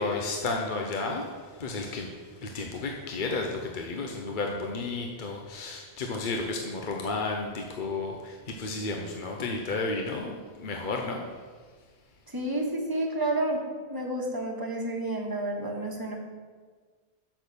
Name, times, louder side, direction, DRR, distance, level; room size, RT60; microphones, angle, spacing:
voice 1, 0.0-11.3, left 3 dB, 55° left, 1 dB, 0.8 m, -32 dB
voice 2, 12.3-13.6 13.9-16.1, right 1 dB, 20° right, -1 dB, 1.4 m, -30 dB
6.5 x 6.0 x 6.8 m, 1.5 s
omnidirectional pair, 1.1 m